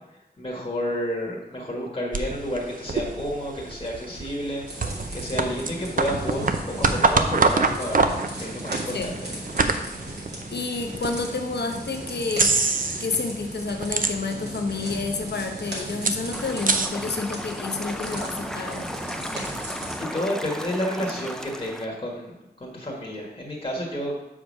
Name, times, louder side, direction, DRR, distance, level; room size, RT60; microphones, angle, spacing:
voice 1, 0.4-8.1 8.4-9.3 20.0-24.2, equal, 35° left, -3 dB, 1.4 m, -30 dB
sound 1, 2.1-11.2 11.7-11.8 12.3-13.2 13.5-14.6 14.9-15.0 15.1-16.9, right 4 dB, 55° right, 0.6 m, -25 dB
sound 2, 4.7-20.0, right 1 dB, 85° right, 2.3 m, -37 dB
voice 2, 10.5-12.5 13.0-18.9, left 3 dB, 90° left, 4 dB, 0.8 m, -29 dB
sound 3, 16.3-21.9, equal, 5° left, 0.5 m, -35 dB
6.4 x 4.9 x 5.2 m, 0.97 s
wide cardioid pair, 85°, 17 cm